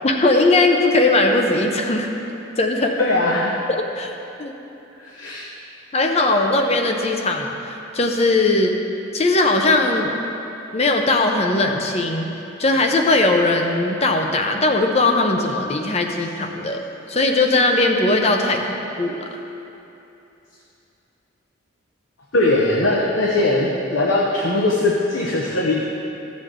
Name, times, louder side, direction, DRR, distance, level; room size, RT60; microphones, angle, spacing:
voice 1, 0.0-2.1 2.6-3.0 4.0-4.1 4.4-4.5 5.9-8.8 9.1-10.1 10.7-12.3 12.6-16.8 17.1-19.3, left 2 dB, 30° left, 3 dB, 0.7 m, -19 dB
voice 2, 3.0-3.5 5.0-5.4 22.3-25.8, left 2 dB, 70° left, -3 dB, 1.0 m, -20 dB
14.5 x 7.4 x 3.7 m, 2.9 s
head